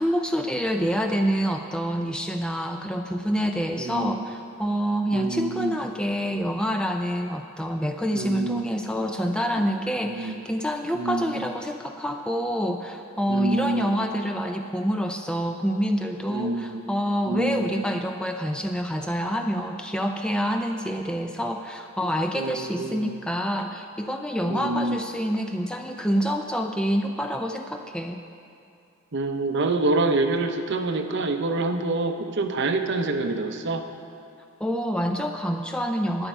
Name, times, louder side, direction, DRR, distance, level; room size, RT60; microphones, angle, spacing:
voice 1, 0.0-28.2 34.6-36.3, equal, 5° left, 4 dB, 0.4 m, -27 dB
voice 2, 3.8-4.2 5.1-5.8 8.1-8.7 10.0-10.4 10.9-11.5 13.3-14.0 16.3-16.8 17.2-17.8 22.3-23.1 24.5-25.0 29.1-33.8, right 2 dB, 55° right, 6 dB, 0.7 m, -27 dB
11.5 x 10.0 x 4.5 m, 2.5 s
head